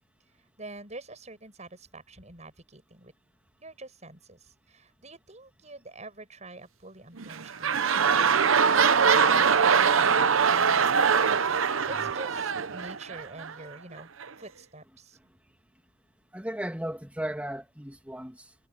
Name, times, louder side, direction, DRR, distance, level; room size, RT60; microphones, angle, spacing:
voice 1, 0.3-3.1 3.6-11.1 11.3-14.1 14.4-15.2, right 2 dB, 35° right, 7.9 m, -46 dB
sound 1, 7.2-13.5 14.2-14.3, right 6 dB, 85° right, 0.9 m, -23 dB
voice 2, 16.3-18.7, right 1 dB, 5° right, 2.3 m, -36 dB
head